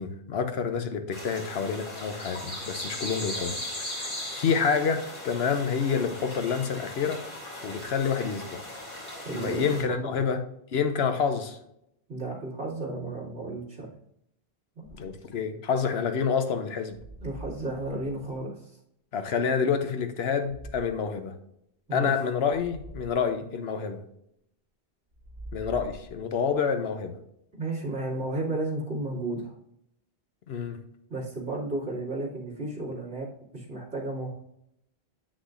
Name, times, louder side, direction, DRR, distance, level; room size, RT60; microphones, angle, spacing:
voice 1, 0.0-3.6 4.0-7.2 7.6-8.6 9.3-10.4 10.7-11.6 15.0-17.0 19.1-21.3 21.9-24.0 25.5-27.2 30.5-30.8, left 6 dB, 70° left, 7 dB, 1.0 m, -28 dB
sound 1, 1.1-9.8, left 1 dB, 55° left, 3.1 m, -38 dB
voice 2, 9.2-10.1 12.1-13.9 14.8-14.9 17.2-18.7 21.9-22.1 27.6-29.5 31.1-33.3 33.5-34.3, right 2 dB, 80° right, -6 dB, 2.6 m, -33 dB
sound 2, 14.8-15.3 16.9-18.4 20.4-21.1 22.5-23.3 25.1-26.5, right 2 dB, 50° right, 1.2 m, -45 dB
8.0 x 6.2 x 2.5 m, 0.78 s
omnidirectional pair, 1.1 m